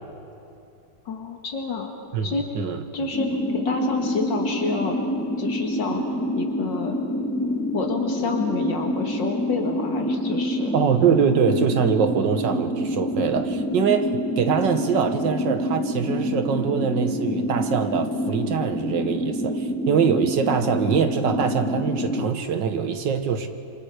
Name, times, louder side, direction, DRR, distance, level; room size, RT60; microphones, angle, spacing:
voice 1, 1.1-1.9 2.2-2.5 2.9-5.0 5.4-6.0 6.4-7.0 7.7-10.7, left 4 dB, 65° left, 2 dB, 2.5 m, -29 dB
voice 2, 2.1-2.8 10.7-14.1 14.4-23.5, right 6 dB, 65° right, 8 dB, 1.9 m, -23 dB
sound 1, 3.1-22.3, equal, 5° left, 1.8 m, -27 dB
27.5 x 25.0 x 5.0 m, 2.8 s
omnidirectional pair, 2.1 m